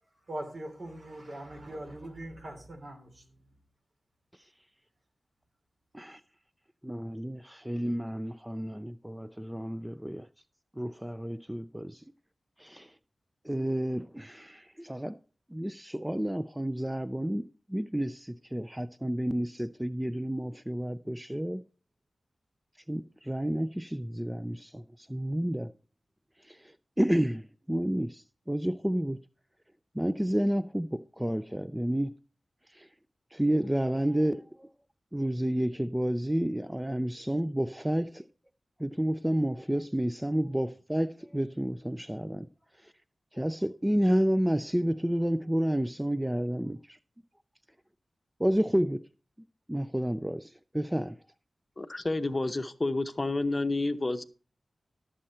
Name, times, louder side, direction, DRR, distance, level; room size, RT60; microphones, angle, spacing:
voice 1, 0.3-3.2, right 1 dB, 55° right, 3.2 m, -41 dB
voice 2, 6.8-10.3 10.8-12.0 12.6-12.9 13.4-15.2 15.5-21.6 22.9-25.7 26.4-29.2 29.9-32.1 32.7-32.9 33.3-34.7 35.1-38.3 38.8-42.5 42.8-42.9 43.3-47.0 48.4-49.1 49.7-51.2, equal, 10° right, 0.4 m, -30 dB
voice 3, 51.8-54.2, left 2 dB, 30° left, 0.8 m, -30 dB
13.0 x 7.5 x 4.3 m
cardioid pair, 55°, 0 cm